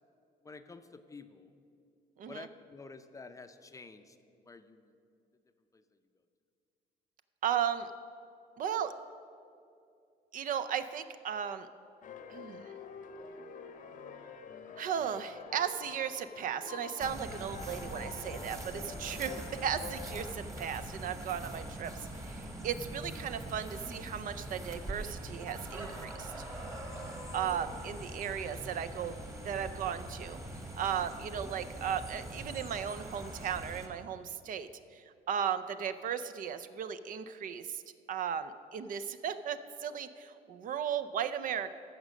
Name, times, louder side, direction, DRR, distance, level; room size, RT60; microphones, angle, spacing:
voice 1, 0.4-1.5 2.3-4.2 4.4-5.0 5.7-5.8 17.3-17.4, left 4 dB, 20° left, 8 dB, 0.5 m, -50 dB
voice 2, 7.4-7.9 8.6-8.9 10.3-11.7 12.3-12.7 14.8-21.9 22.2-26.3 27.3-29.2 29.4-30.4 30.7-37.8 38.1-41.7, right 8 dB, 55° right, 11 dB, 0.5 m, -36 dB
sound 1, 12.0-20.3, left 6 dB, 50° left, 0.8 m, -47 dB
sound 2, 17.0-33.9, right 1 dB, 20° right, 1.4 m, -43 dB
14.5 x 5.1 x 6.2 m, 2.5 s
cardioid pair, 110°, 17 cm